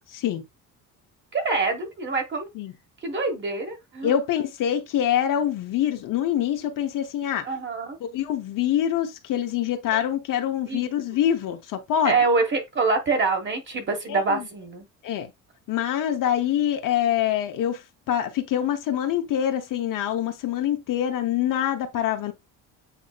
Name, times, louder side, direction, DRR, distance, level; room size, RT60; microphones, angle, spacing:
voice 1, 0.1-0.4 2.5-2.7 4.0-7.5 8.1-12.1 14.1-14.4 15.0-15.3 15.7-22.3, left 10 dB, 65° left, 0.9 m, -25 dB
voice 2, 1.3-2.5 3.0-4.2 7.4-8.0 10.7-10.8 11.1-11.2 12.0-14.8, right 3 dB, 30° right, 1.4 m, -25 dB
8.2 x 2.7 x 2.4 m
cardioid pair, 135°, 35 cm